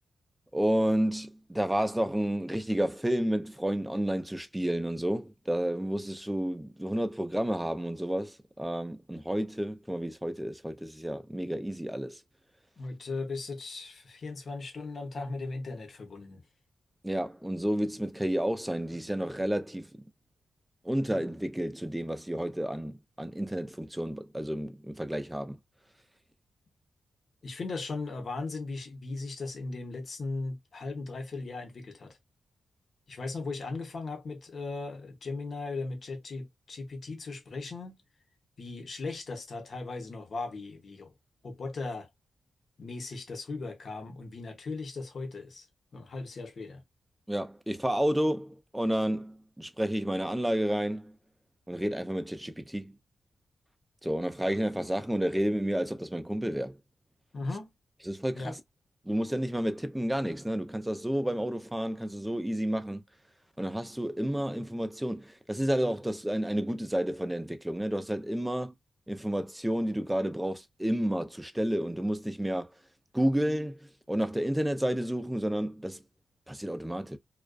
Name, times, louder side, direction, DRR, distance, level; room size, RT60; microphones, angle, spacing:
voice 1, 0.5-12.2 17.0-20.0 20.8-25.6 47.3-51.2 51.7-53.0 54.0-56.8 58.1-58.6 59.0-63.0 63.6-68.7 69.1-72.7 73.1-76.0 76.5-77.2, equal, 5° right, 0.4 m, -31 dB
voice 2, 12.8-16.4 27.4-32.2 33.1-38.0 38.6-41.1 41.4-42.1 42.8-45.7 45.9-46.8 57.3-57.7 58.3-58.6, left 3 dB, 50° left, 0.8 m, -37 dB
2.4 x 2.2 x 2.2 m
wide cardioid pair, 110°, 0 cm